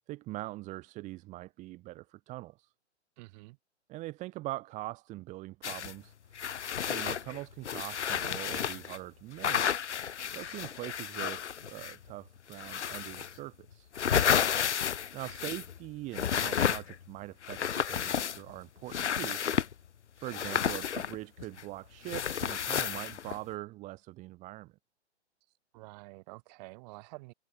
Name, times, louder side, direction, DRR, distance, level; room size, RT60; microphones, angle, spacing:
voice 1, 0.1-2.7 3.9-6.5 6.8-9.8 10.3-13.9 15.1-19.4 20.2-24.7, right 18 dB, 20° right, 1.1 m, -42 dB
voice 2, 3.2-3.6 14.3-14.6 25.7-27.3, right 25 dB, 35° right, 3.7 m, -48 dB
sound 1, 5.6-5.9 6.3-9.0 9.4-12.1 12.5-13.4 13.7-15.8 16.1-17.1 17.4-18.6 18.9-19.7 20.3-21.6 22.1-23.4, left 8 dB, 75° left, 1.5 m, -31 dB
hypercardioid pair, 135°, 35 cm